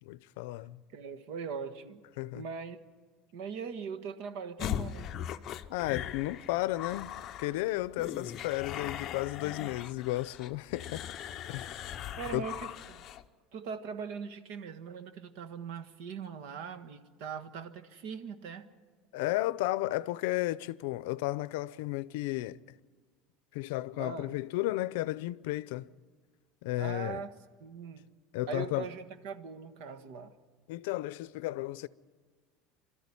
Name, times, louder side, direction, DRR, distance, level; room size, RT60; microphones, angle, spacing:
voice 1, 0.0-0.8 2.2-2.4 5.7-11.1 11.5-11.9 12.3-12.4 19.1-22.6 23.5-25.9 26.6-27.2 28.3-28.9 30.7-31.9, left 17 dB, 75° left, 0.6 m, -33 dB
voice 2, 0.9-2.0 2.3-2.8 3.3-5.1 12.2-13.0 13.5-18.7 24.0-24.3 26.8-27.3 27.6-28.1 28.5-30.3, right 6 dB, 60° right, 1.5 m, -41 dB
sound 1, 4.6-13.3, left 10 dB, 30° left, 0.7 m, -39 dB
26.5 x 13.0 x 9.8 m
cardioid pair, 170°, 0 cm